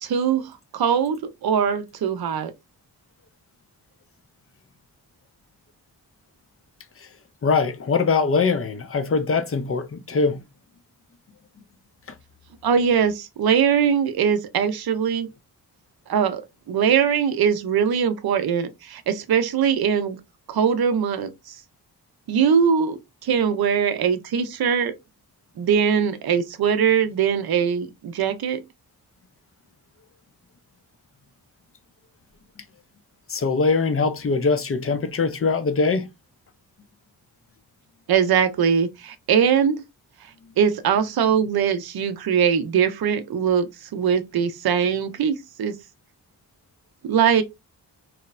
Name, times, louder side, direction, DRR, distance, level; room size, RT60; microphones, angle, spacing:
voice 1, 0.0-2.5 12.6-15.3 16.1-16.4 16.7-20.2 20.5-21.3 22.3-24.9 25.6-28.6 38.1-39.8 40.6-45.7 47.1-47.4, right 7 dB, 60° right, 0.6 m, -21 dB
voice 2, 7.4-10.4 33.3-36.1, left 4 dB, 35° left, 0.5 m, -22 dB
3.0 x 2.0 x 2.3 m
cardioid pair, 50°, 42 cm